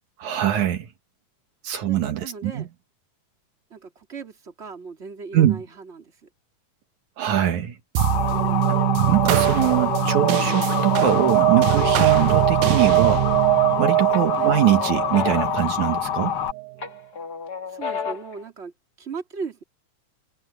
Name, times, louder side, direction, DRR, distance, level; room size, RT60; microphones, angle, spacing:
voice 1, 0.2-0.9 1.6-2.6 5.3-5.6 7.2-7.8 8.7-8.8 9.1-13.3 13.8-16.4, right 11 dB, 70° right, 2.7 m, -22 dB
voice 2, 1.8-2.7 3.7-6.1 8.3-8.7 14.4-14.5 17.7-18.7 19.0-19.6, right 5 dB, 20° right, 3.0 m, -37 dB
Motor vehicle (road) / Siren, 8.0-16.5, left 10 dB, 75° left, 1.1 m, -26 dB
sound 1, 8.0-16.7, right 20 dB, 85° right, 2.2 m, -22 dB
sound 2, 13.1-13.7 14.1-16.4 16.8-18.4, left 6 dB, 35° left, 1.9 m, -33 dB
omnidirectional pair, 3.6 m